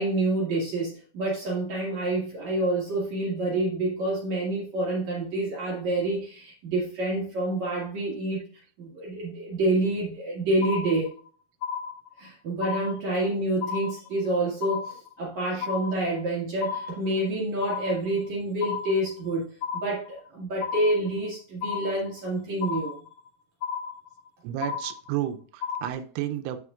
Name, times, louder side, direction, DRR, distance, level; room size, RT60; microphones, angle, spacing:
voice 1, 0.0-8.4 8.8-11.1 12.2-23.0, right 2 dB, 55° right, -3 dB, 2.6 m, -28 dB
sound 1, 10.6-11.3 11.6-12.3 12.6-13.3 13.6-14.3 14.6-15.3 15.6-16.3 16.6-17.3 17.6-18.3 18.6-19.3 19.6-20.3 20.6-21.3 21.6-22.3 22.6-23.3 23.6-24.3 24.6-25.3 25.6-25.9, left 7 dB, 70° left, 1.7 m, -33 dB
voice 2, 24.4-26.6, right 12 dB, 85° right, 10 dB, 2.7 m, -32 dB
13.5 x 5.0 x 2.4 m, 0.42 s
omnidirectional pair, 4.8 m